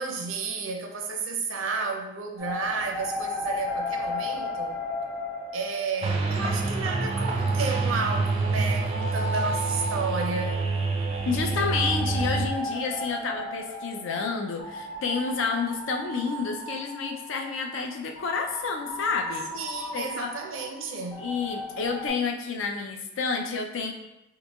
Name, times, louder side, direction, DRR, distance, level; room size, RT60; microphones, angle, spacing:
voice 1, 0.0-4.8 5.5-10.6 19.5-21.3, right 4 dB, 90° right, 2 dB, 0.5 m, -32 dB
sound 1, 2.4-6.5 6.9-17.5 18.2-22.1, left 1 dB, 60° left, 1.0 m, -35 dB
sound 2, 6.0-12.5, right 3 dB, 30° right, 0.3 m, -27 dB
voice 2, 11.3-19.5 19.9-20.3 21.2-23.9, left 5 dB, 75° left, 3 dB, 0.5 m, -29 dB
3.9 x 2.8 x 2.3 m, 0.90 s
head